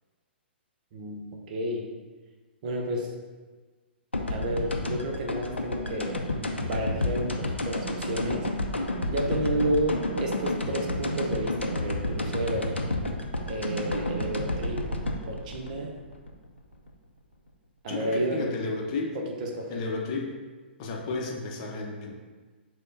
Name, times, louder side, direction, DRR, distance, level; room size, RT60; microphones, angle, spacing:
voice 1, 0.9-1.9 2.6-3.1 4.3-6.2 6.6-8.5 9.1-12.7 13.4-14.8 15.3-16.0 17.8-18.6 19.1-19.8, right 1 dB, 45° right, 1 dB, 0.7 m, -31 dB
sound 1, 4.1-16.9, left 1 dB, 85° left, 0.5 m, -31 dB
voice 2, 17.9-19.2 19.7-20.4 20.8-22.1, left 3 dB, 40° left, 0 dB, 0.7 m, -32 dB
6.4 x 2.2 x 3.8 m, 1.4 s
figure-of-eight pair, 115°, 6 cm